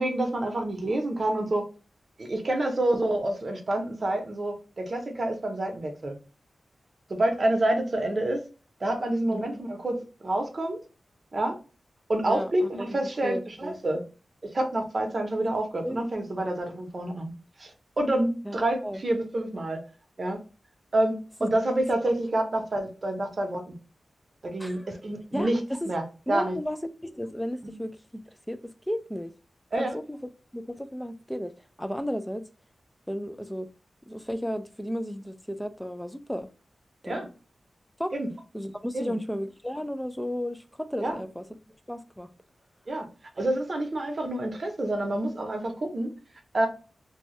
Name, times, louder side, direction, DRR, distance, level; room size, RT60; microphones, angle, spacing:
voice 1, 0.0-1.7 2.2-6.1 7.1-8.4 8.8-10.8 11.3-11.5 12.1-14.0 14.5-17.3 17.6-19.8 20.2-20.4 20.9-21.2 21.4-23.8 24.4-25.6 25.9-26.6 27.6-27.7 29.7-29.9 37.0-37.3 38.1-38.3 38.9-39.1 41.0-41.2 42.9-43.0 43.4-46.1 46.5-46.7, right 1 dB, 45° right, 0.7 m, -28 dB
voice 2, 12.3-13.8 15.8-16.0 16.4-16.5 18.4-18.6 18.8-19.0 21.4-21.5 22.8-22.9 24.6-24.9 25.3-25.5 25.8-25.9 26.3-27.9 28.5-28.6 28.9-29.3 29.8-31.5 31.8-32.4 33.1-33.7 34.1-36.5 37.0-37.2 38.0-38.1 38.5-41.4 41.9-42.3, equal, 5° left, 0.3 m, -33 dB
2.7 x 2.2 x 3.1 m
wide cardioid pair, 105°, 0 cm